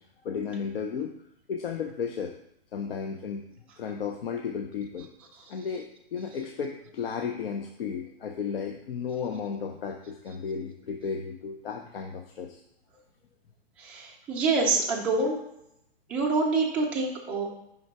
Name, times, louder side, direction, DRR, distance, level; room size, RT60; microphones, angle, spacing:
voice 1, 0.2-1.1 1.5-2.3 2.7-3.4 3.8-5.1 5.5-12.6, left 6 dB, 65° left, 3 dB, 0.7 m, -34 dB
voice 2, 13.8-15.4 16.1-17.5, right 3 dB, 5° right, -3 dB, 0.3 m, -26 dB
5.7 x 3.8 x 4.6 m, 0.78 s
hypercardioid pair, 145°, 31 cm